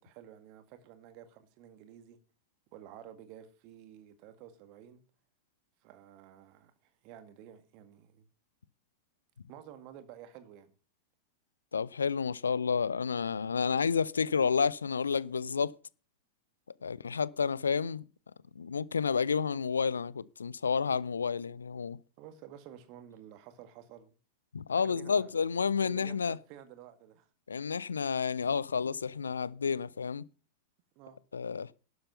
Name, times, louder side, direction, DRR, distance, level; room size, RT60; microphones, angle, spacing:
voice 1, 0.0-2.2 2.7-5.0 5.8-8.3 9.5-10.7 16.8-16.9 22.2-24.1 24.7-25.5 25.8-27.3 31.0-31.2, right 10 dB, 45° right, 1.9 m, -52 dB
voice 2, 11.7-15.7 16.8-18.0 18.6-22.0 24.5-26.4 27.5-30.3 31.3-31.7, left 6 dB, 70° left, 0.5 m, -30 dB
12.0 x 7.9 x 5.6 m
figure-of-eight pair, 90°, 0 cm